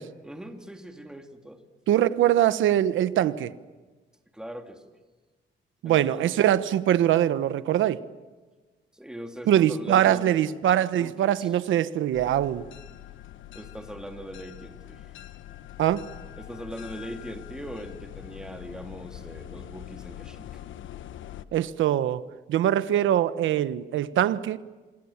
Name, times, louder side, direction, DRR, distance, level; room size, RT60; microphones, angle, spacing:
voice 1, 0.2-1.6 4.3-4.8 5.8-6.3 8.9-11.5 13.5-15.0 16.4-20.6, equal, 5° right, 3.0 m, -41 dB
voice 2, 1.9-3.5 5.8-8.0 9.5-12.7 15.8-16.1 21.5-22.2 22.5-24.6, right 11 dB, 80° right, 1.3 m, -23 dB
sound 1, 12.1-21.4, left 13 dB, 75° left, 1.3 m, -43 dB
27.0 x 27.0 x 7.3 m
cardioid pair, 90°, 20 cm